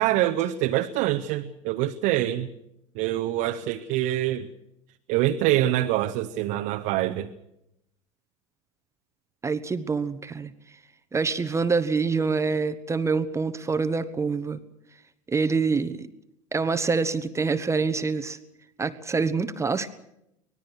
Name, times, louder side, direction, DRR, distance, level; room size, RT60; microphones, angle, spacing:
voice 1, 0.0-2.5 2.9-4.5 5.1-7.3, right 14 dB, 50° right, 6 dB, 1.1 m, -25 dB
voice 2, 9.4-10.5 11.1-14.6 15.3-16.1 16.5-18.4 18.8-19.9, right 4 dB, 15° right, 11 dB, 1.2 m, -26 dB
25.0 x 19.5 x 6.4 m, 0.80 s
figure-of-eight pair, 70°, 17 cm